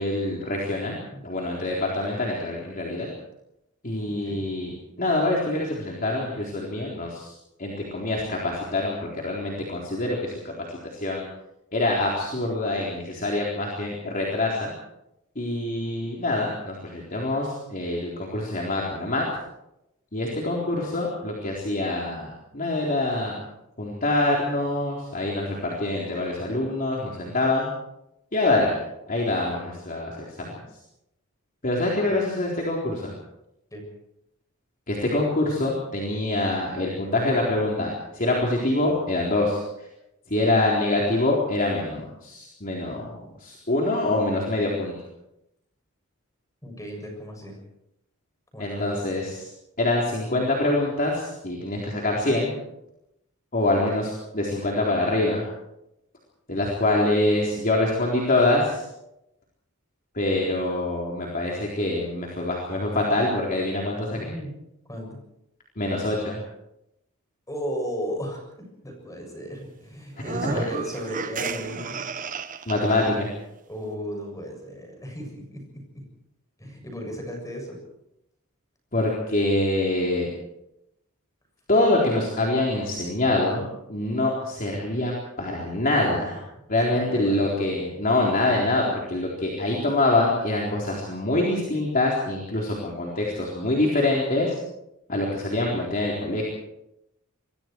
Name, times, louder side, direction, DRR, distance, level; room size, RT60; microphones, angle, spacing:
voice 1, 0.0-0.9 1.2-3.1 3.8-7.3 7.6-11.2 11.7-14.7 15.4-19.2 20.1-23.4 23.8-27.7 28.3-28.8 29.1-30.6 31.6-33.1 34.9-39.9 40.3-44.9 48.6-49.5 49.8-52.5 53.5-55.4 56.5-58.8 60.1-64.3 65.8-66.4 70.4-70.7 72.7-73.3 78.9-80.3 81.7-83.6 83.9-86.4 86.7-94.6 95.1-96.4, left 2 dB, 40° left, -2 dB, 4.0 m, -25 dB
voice 2, 0.7-1.2 4.1-4.5 15.8-16.1 33.7-33.9 46.6-47.6 48.5-49.0 53.8-54.0 64.1-64.5 64.9-65.2 67.5-72.0 73.7-76.0 76.6-77.8 86.9-87.6, equal, 15° left, 2 dB, 7.2 m, -35 dB
sound 1, 70.2-73.1, right 4 dB, 40° right, 1.2 m, -33 dB
26.5 x 22.5 x 4.7 m, 0.85 s
head